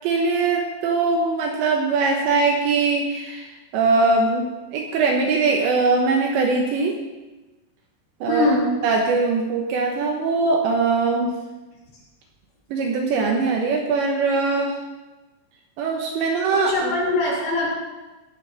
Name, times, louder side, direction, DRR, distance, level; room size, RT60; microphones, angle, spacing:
voice 1, 0.0-7.0 8.2-8.5 8.8-11.4 12.7-14.7 15.8-16.9, right 4 dB, 70° right, 2 dB, 3.0 m, -21 dB
voice 2, 8.3-8.7 16.2-17.7, left 2 dB, 60° left, -5 dB, 5.3 m, -23 dB
17.5 x 7.3 x 5.7 m, 1.2 s
omnidirectional pair, 6.0 m